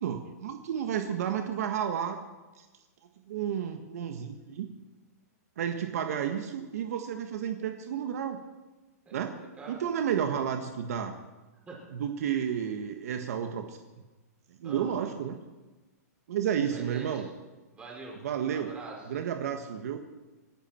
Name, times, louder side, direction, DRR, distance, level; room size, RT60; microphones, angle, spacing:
voice 1, 0.0-2.2 2.6-2.7 3.3-4.7 5.6-8.4 9.1-9.3 9.7-11.1 11.9-13.8 14.6-15.4 16.3-17.3 18.2-18.7 19.1-20.0, right 8 dB, 60° right, 6 dB, 1.5 m, -31 dB
voice 2, 9.0-9.9 11.7-11.8 14.6-15.1 16.7-17.3 17.7-18.2 18.5-19.1, right 3 dB, 15° right, -3 dB, 5.6 m, -45 dB
27.5 x 11.5 x 4.5 m, 1.2 s
hypercardioid pair, 150°, 9 cm